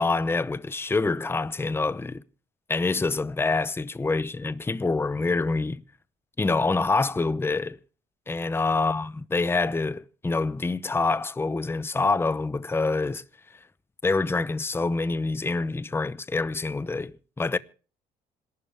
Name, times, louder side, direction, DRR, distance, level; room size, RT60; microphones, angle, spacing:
voice 1, 0.0-2.2 2.7-5.8 6.4-7.8 8.3-13.2 14.0-17.6, left 3 dB, 15° left, 0.8 m, -26 dB
27.0 x 12.5 x 3.5 m
cardioid pair, 110°, 17 cm